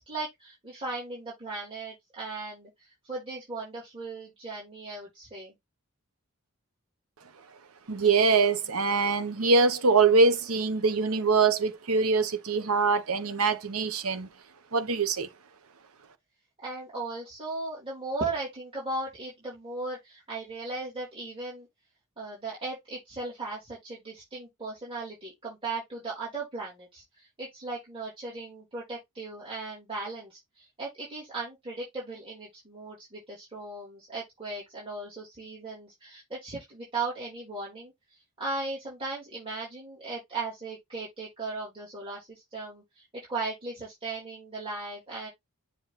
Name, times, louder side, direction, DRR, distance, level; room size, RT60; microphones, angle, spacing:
voice 1, 0.0-5.5 16.6-21.7 22.2-37.9 38.4-45.3, right 3 dB, 25° right, 3.3 m, -37 dB
voice 2, 7.9-14.3 14.7-15.3, right 4 dB, 75° right, 0.9 m, -23 dB
7.9 x 3.0 x 4.1 m
head